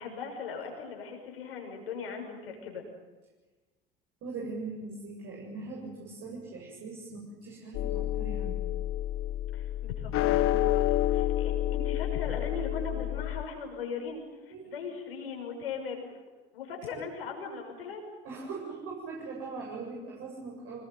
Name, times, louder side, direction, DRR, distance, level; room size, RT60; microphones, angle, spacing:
voice 1, 0.0-2.8 9.5-16.2 16.5-18.0, left 5 dB, 75° left, 2 dB, 6.5 m, -39 dB
voice 2, 4.2-8.7 14.5-14.7 18.2-20.9, right 3 dB, 50° right, -3 dB, 7.9 m, -41 dB
sound 1, 7.7-13.4, left 13 dB, 50° left, 1.3 m, -29 dB
26.0 x 21.5 x 9.5 m, 1.2 s
figure-of-eight pair, 65°, 29 cm